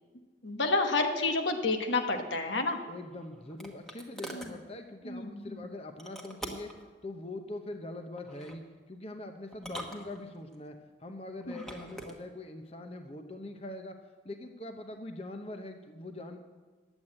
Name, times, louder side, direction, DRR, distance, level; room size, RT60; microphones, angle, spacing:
voice 1, 0.4-2.8 4.3-4.5 5.0-5.6 11.5-11.6, left 3 dB, 85° left, 5 dB, 1.2 m, -30 dB
sound 1, 2.8-4.6 6.0-6.8 8.2-8.6 9.5-10.6 11.4-12.2, right 1 dB, ahead, 1.2 m, -44 dB
voice 2, 2.9-6.7 7.0-14.0 14.2-16.4, left 2 dB, 35° left, 6 dB, 0.8 m, -43 dB
10.5 x 8.1 x 8.7 m, 1.4 s
head